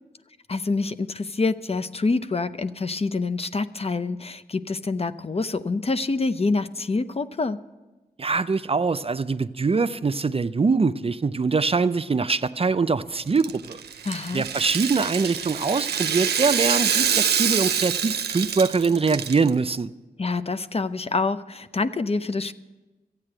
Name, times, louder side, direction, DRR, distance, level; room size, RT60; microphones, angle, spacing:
voice 1, 0.5-7.6 14.0-14.4 20.2-22.5, left 3 dB, 40° left, 0.6 m, -26 dB
voice 2, 8.2-13.8 14.3-19.9, right 4 dB, 35° right, 0.5 m, -23 dB
Rattle (instrument), 13.3-19.5, right 8 dB, 85° right, 0.5 m, -26 dB
13.5 x 8.9 x 7.6 m
cardioid pair, 40°, 16 cm